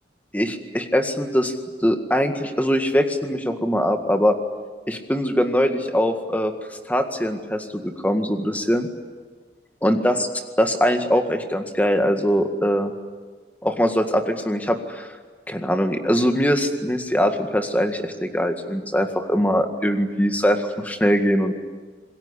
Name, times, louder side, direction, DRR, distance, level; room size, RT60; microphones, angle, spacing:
voice 1, 0.3-1.5 1.8-4.4 4.9-6.5 6.9-8.9 9.8-10.3 10.6-12.9 13.6-15.1 15.5-21.5, equal, 10° left, 6 dB, 1.9 m, -22 dB
27.5 x 21.0 x 10.0 m, 1.4 s
head